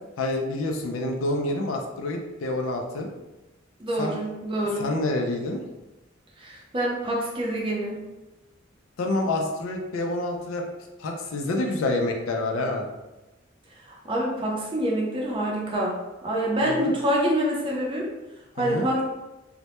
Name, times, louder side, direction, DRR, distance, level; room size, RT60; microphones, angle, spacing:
voice 1, 0.2-3.1 4.0-4.2 4.8-5.6 9.0-10.6 11.0-12.9 16.6-16.9 18.6-18.9, left 2 dB, 80° left, 2 dB, 0.4 m, -27 dB
voice 2, 3.8-4.9 6.4-8.0 13.8-15.9 16.2-18.1 18.6-19.0, right 1 dB, 25° right, -3 dB, 0.5 m, -26 dB
2.1 x 2.1 x 2.8 m, 1.0 s
head